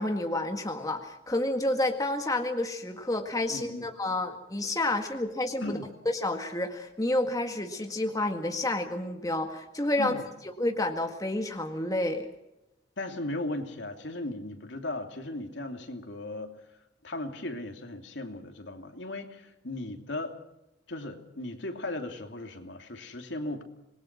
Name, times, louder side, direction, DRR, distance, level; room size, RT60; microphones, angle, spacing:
voice 1, 0.0-5.8 6.0-10.1 10.6-12.3, left 1 dB, 20° left, 4 dB, 1.8 m, -29 dB
voice 2, 3.5-3.9 5.6-5.9 10.0-10.2 13.0-16.6 17.0-20.4 20.9-23.6, left 2 dB, 75° left, 5 dB, 2.9 m, -37 dB
26.5 x 21.0 x 6.1 m, 0.91 s
head